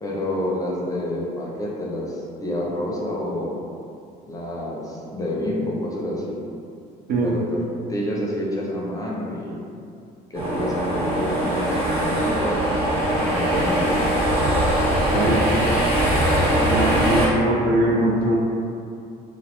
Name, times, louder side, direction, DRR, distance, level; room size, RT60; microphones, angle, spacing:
voice 1, 0.0-3.6 4.3-6.4 7.2-7.6 7.9-9.6 10.3-12.6 13.2-14.1, left 1 dB, 20° left, -4 dB, 0.4 m, -28 dB
voice 2, 7.1-7.4 15.1-15.6 16.7-18.3, right 1 dB, 60° right, -2 dB, 0.5 m, -21 dB
sound 1, 10.3-17.3, right 1 dB, 35° right, 1.0 m, -21 dB
2.3 x 2.0 x 2.9 m, 2.5 s
cardioid pair, 110°, 17 cm